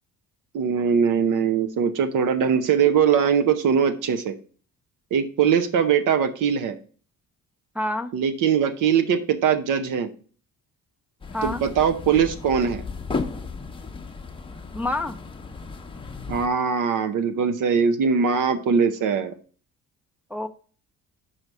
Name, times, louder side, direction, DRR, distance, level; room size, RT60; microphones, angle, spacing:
voice 1, 0.5-4.3 5.1-6.8 8.1-10.1 11.4-12.8 16.3-19.3, right 7 dB, 65° right, 9 dB, 0.8 m, -21 dB
voice 2, 7.8-8.1 11.3-11.6 14.7-15.2 20.3-20.5, left 1 dB, 5° right, 5 dB, 0.3 m, -27 dB
sound 1, 11.2-16.5, left 4 dB, 15° left, 0.8 m, -34 dB
5.7 x 4.7 x 6.5 m, 0.42 s
cardioid pair, 150°, 34 cm